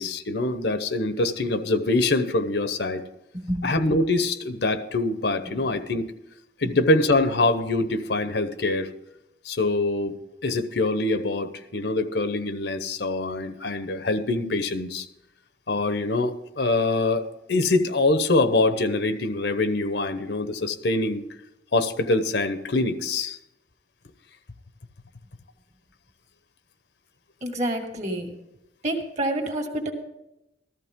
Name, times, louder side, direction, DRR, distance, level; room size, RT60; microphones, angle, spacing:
voice 1, 0.0-3.0 3.6-6.1 6.6-8.9 9.4-10.1 10.4-15.1 15.7-21.2 21.7-23.4, left 2 dB, 65° left, 11 dB, 0.9 m, -24 dB
voice 2, 27.4-28.3 28.8-29.9, right 1 dB, 40° right, 4 dB, 2.0 m, -28 dB
14.5 x 14.0 x 3.7 m, 0.90 s
head